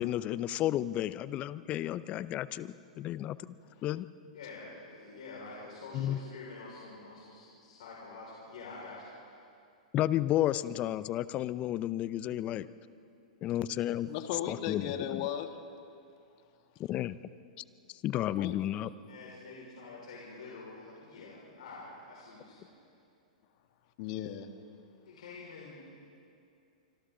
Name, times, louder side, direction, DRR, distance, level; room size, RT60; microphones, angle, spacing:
voice 1, 0.0-3.4 3.8-4.1 5.9-6.2 9.9-12.7 13.4-14.1 14.5-14.8 15.1-15.2 16.9-17.1 18.0-18.9, left 13 dB, 35° left, 16 dB, 0.6 m, -32 dB
voice 2, 4.3-9.1 19.1-22.8 25.0-25.9, left 3 dB, 70° left, -5 dB, 5.3 m, -47 dB
voice 3, 14.1-15.5 18.4-18.5 24.0-24.5, left 10 dB, 50° left, 6 dB, 1.8 m, -36 dB
26.5 x 25.5 x 3.9 m, 2.5 s
hypercardioid pair, 115°, 4 cm